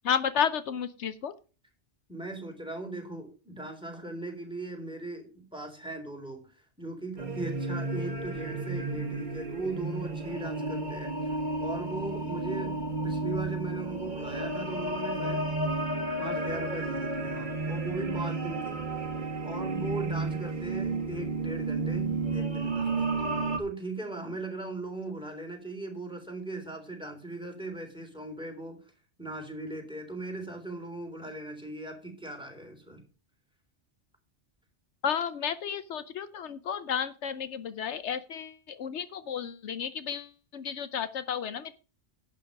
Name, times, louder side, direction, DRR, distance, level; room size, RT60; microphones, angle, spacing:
voice 1, 0.0-1.3 35.0-40.3 40.5-41.7, left 8 dB, 75° left, 13 dB, 1.0 m, -32 dB
voice 2, 2.1-6.5 6.8-15.5 16.2-18.8 19.4-22.9 23.6-28.8 29.2-33.0, right 2 dB, 5° right, 3 dB, 3.7 m, -38 dB
sound 1, 7.2-23.6, right 3 dB, 40° right, 1.7 m, -32 dB
11.5 x 8.7 x 5.3 m, 0.35 s
omnidirectional pair, 1.2 m